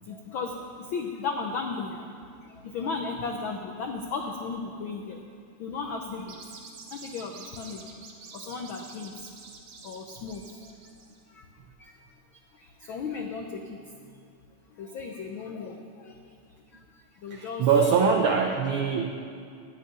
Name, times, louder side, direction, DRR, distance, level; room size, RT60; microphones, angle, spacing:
voice 1, 0.0-5.2 5.6-6.4 6.9-8.0 8.3-9.3 9.8-10.8 11.3-11.5 11.8-12.0 12.5-14.2 14.7-16.2 16.7-17.7 18.0-18.5, left 4 dB, 90° left, 3 dB, 1.1 m, -36 dB
sound 1, 6.2-11.2, right 5 dB, 70° right, 2.7 m, -47 dB
voice 2, 17.3-19.2, right 6 dB, 90° right, 4 dB, 1.1 m, -23 dB
11.0 x 9.8 x 9.3 m, 2.4 s
omnidirectional pair, 3.4 m